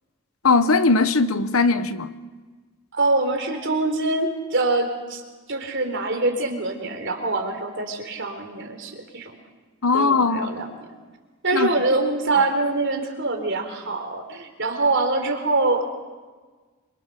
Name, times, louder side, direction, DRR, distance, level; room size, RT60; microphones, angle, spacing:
voice 1, 0.4-2.1 9.8-10.6 11.5-11.7, left 4 dB, 75° left, 1.2 m, -19 dB
voice 2, 2.9-5.2 5.5-9.3 9.9-10.9 11.4-15.8, right 2 dB, 55° right, 3.9 m, -24 dB
27.5 x 23.5 x 6.8 m
head